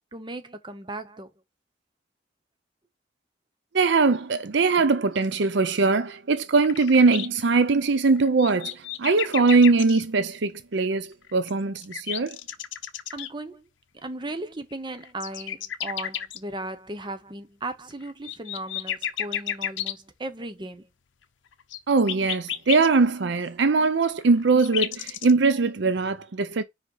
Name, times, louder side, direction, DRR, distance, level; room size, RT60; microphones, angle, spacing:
voice 1, 0.1-1.3 13.1-13.7 14.0-20.9, right 2 dB, 25° right, 0.8 m, -36 dB
voice 2, 3.7-12.4 21.9-26.6, right 4 dB, 65° right, 0.6 m, -21 dB
sound 1, 6.6-7.3 8.1-10.0 11.3-13.3 14.7-16.4 18.0-19.9 21.6-22.9 24.0-25.3, left 10 dB, 75° left, 0.7 m, -32 dB
5.2 x 5.1 x 3.9 m
head